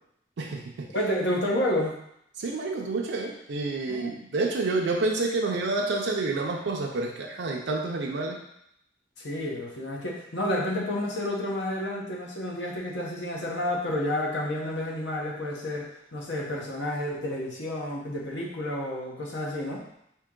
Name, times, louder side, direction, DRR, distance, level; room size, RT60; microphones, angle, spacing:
voice 1, 0.4-0.9 2.4-8.4, right 3 dB, 70° right, 0 dB, 0.5 m, -29 dB
voice 2, 0.9-2.0 3.9-4.1 9.2-19.8, left 1 dB, 70° left, -2 dB, 1.0 m, -30 dB
4.5 x 2.9 x 3.7 m, 0.77 s
head